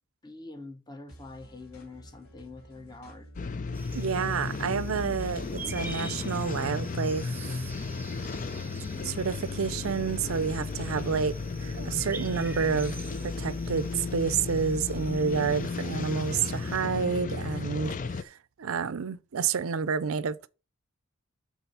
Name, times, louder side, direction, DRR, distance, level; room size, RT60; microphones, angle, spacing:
voice 1, 0.2-3.3, left 3 dB, 20° left, 1.0 m, -45 dB
sound 1, 1.1-11.4, equal, 80° left, 3.0 m, -52 dB
sound 2, 3.4-18.2, left 4 dB, 35° left, 0.4 m, -34 dB
sound 3, 3.7-16.8, right 2 dB, 10° right, 0.7 m, -46 dB
voice 2, 3.9-7.6 9.0-11.3 11.6-12.9 13.2-20.5, right 6 dB, 75° right, 0.5 m, -29 dB
7.0 x 4.1 x 5.4 m
head